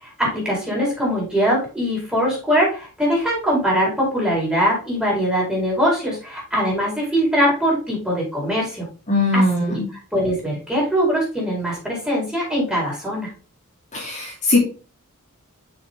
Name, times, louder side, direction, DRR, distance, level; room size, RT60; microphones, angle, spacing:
voice 1, 0.0-8.8 9.3-9.7 10.1-13.3, equal, 5° right, -5 dB, 4.5 m, -22 dB
voice 2, 9.1-9.9 13.9-14.6, left 2 dB, 35° left, -5 dB, 3.0 m, -20 dB
6.7 x 6.5 x 3.7 m, 0.36 s
head